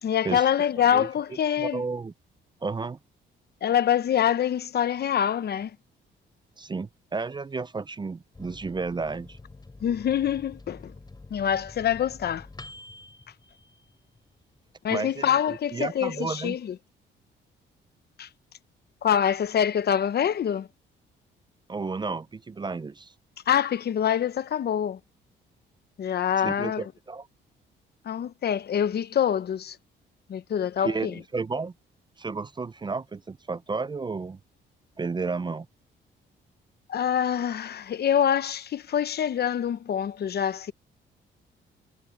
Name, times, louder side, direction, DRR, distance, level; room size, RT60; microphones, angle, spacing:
voice 1, 0.0-1.8 3.6-5.8 9.8-10.9 11.3-12.5 14.8-16.8 18.2-18.3 19.0-20.7 23.5-25.0 26.0-26.8 28.0-29.8 30.3-31.1 36.9-40.7, left 9 dB, 55° left, 0.9 m, -25 dB
voice 2, 1.6-2.1 2.6-3.0 6.6-9.4 14.9-16.6 21.7-23.1 26.4-27.3 30.8-31.7 32.2-34.4 35.0-35.7, right 4 dB, 20° right, 0.5 m, -32 dB
Microwave oven, 8.3-14.4 14.8-14.9 15.2-15.8, left 2 dB, 20° left, 5.2 m, -47 dB
cardioid pair, 90°, 20 cm